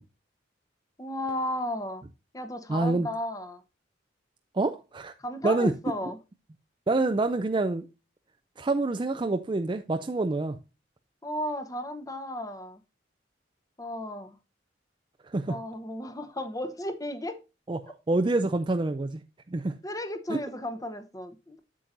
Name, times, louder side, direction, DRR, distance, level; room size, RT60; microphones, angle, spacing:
voice 1, 1.0-2.0 2.3-3.6 5.2-6.2 11.2-12.8 13.8-14.4 15.5-17.4 19.8-21.6, left 1 dB, 20° left, 0.9 m, -34 dB
voice 2, 2.7-3.1 4.5-5.1 5.4-5.7 6.9-7.9 8.6-10.6 15.3-15.6 17.7-17.8 18.1-19.2 19.5-19.8 20.3-20.4, right 2 dB, 25° right, 0.4 m, -26 dB
8.4 x 7.4 x 2.5 m
head